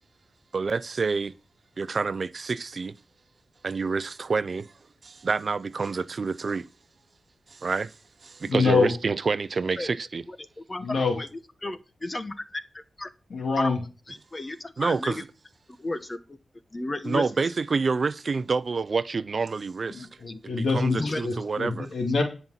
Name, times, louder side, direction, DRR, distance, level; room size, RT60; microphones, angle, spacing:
voice 1, 0.5-1.3 1.8-2.9 3.6-4.7 5.0-6.7 7.5-7.9 8.2-10.2 14.8-15.2 17.0-20.1 20.7-21.9, right 4 dB, 50° right, 0.6 m, -28 dB
voice 2, 8.5-8.9 10.8-11.2 13.3-13.8 19.9-22.2, left 4 dB, 65° left, 2.3 m, -25 dB
voice 3, 10.3-11.3 11.6-13.1 13.6-13.8 14.1-15.2 15.8-16.4 16.7-17.2 21.0-21.2, left 2 dB, 25° left, 1.0 m, -33 dB
10.5 x 5.4 x 5.7 m
cardioid pair, 85°, 0 cm